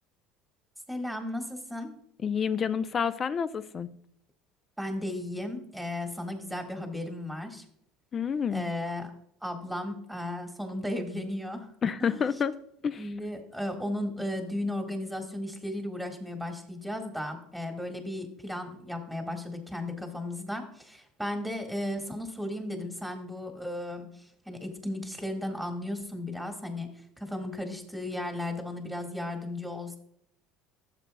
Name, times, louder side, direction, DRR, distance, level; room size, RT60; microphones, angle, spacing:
voice 1, 0.9-1.9 4.8-7.6 8.5-9.1 9.4-11.7 12.0-12.2 13.0-26.9 27.2-30.0, left 1 dB, ahead, 1.7 m, -35 dB
voice 2, 2.2-3.9 8.1-8.7 11.8-12.5 12.8-13.1, left 7 dB, 35° left, 0.5 m, -29 dB
13.0 x 7.5 x 2.3 m
supercardioid pair, 90°, 0 cm